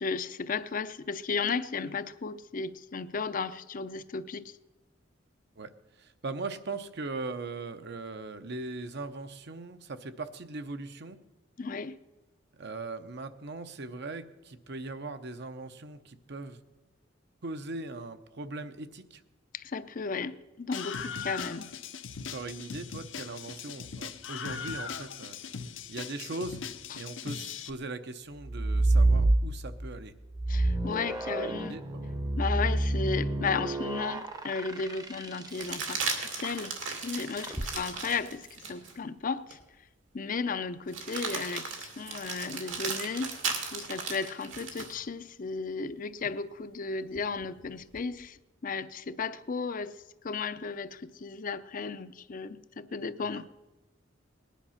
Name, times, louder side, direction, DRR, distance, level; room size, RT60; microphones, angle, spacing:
voice 1, 0.0-4.5 11.6-12.0 19.5-21.7 26.9-27.0 30.5-31.8 32.4-39.6 40.1-43.4 43.7-50.0 50.2-53.5, left 5 dB, 45° left, 0.6 m, -34 dB
voice 2, 6.0-11.2 12.6-16.6 17.4-19.2 22.3-25.4 25.9-26.6 26.9-30.1 30.9-32.0 53.2-53.4, right 3 dB, 60° right, 0.8 m, -40 dB
Screaming, 20.7-27.7, left 6 dB, 75° left, 0.8 m, -39 dB
sound 1, 28.4-29.9 30.3-35.8 37.4-37.7, right 2 dB, 20° right, 0.8 m, -28 dB
sound 2, 33.9-34.0 35.5-39.0 39.5-39.6 40.9-45.0 47.1-48.0, right 5 dB, 80° right, 2.3 m, -36 dB
19.0 x 10.5 x 5.7 m
head